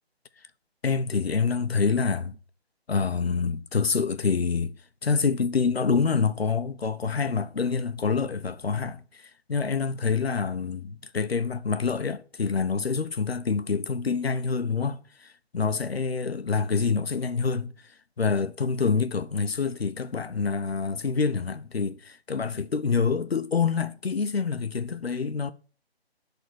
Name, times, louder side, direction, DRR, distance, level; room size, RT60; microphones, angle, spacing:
voice 1, 0.8-2.4 2.9-4.7 5.0-9.0 9.5-15.0 15.5-17.7 18.2-25.5, left 5 dB, 65° left, 1.1 m, -26 dB
11.5 x 4.1 x 7.8 m
figure-of-eight pair, 170°, 32 cm